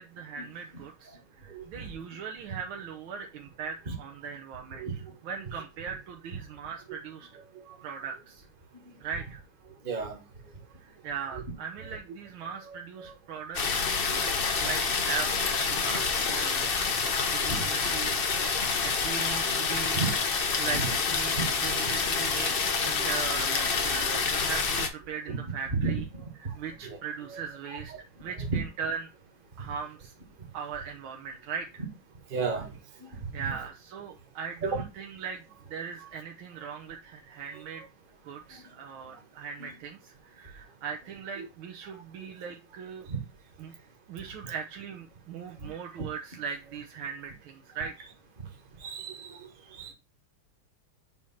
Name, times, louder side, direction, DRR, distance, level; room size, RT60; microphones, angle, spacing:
voice 1, 0.0-4.9 5.2-7.3 7.8-8.5 9.0-9.4 10.8-13.8 14.6-18.3 18.6-20.1 20.5-26.1 26.4-27.9 28.2-29.1 29.6-30.1 30.5-31.8 33.1-35.4 35.7-37.9 38.2-43.1 43.6-43.7 44.1-47.9, right 6 dB, 75° right, 1.7 m, -39 dB
voice 2, 9.8-10.2 13.0-13.1 14.1-14.7 16.0-16.1 17.5-17.6 19.9-20.1 20.7-20.9 21.2-21.5 24.1-24.2 25.3-25.4 25.8-25.9 26.8-27.0 28.5-28.6 32.3-32.7 33.4-33.5 34.6-34.8 39.6-39.7 43.1-43.2 48.8-49.4 49.7-49.9, right 4 dB, 30° right, 1.3 m, -33 dB
sound 1, 13.5-24.9, left 5 dB, 70° left, 0.5 m, -27 dB
7.8 x 3.1 x 5.7 m
omnidirectional pair, 2.3 m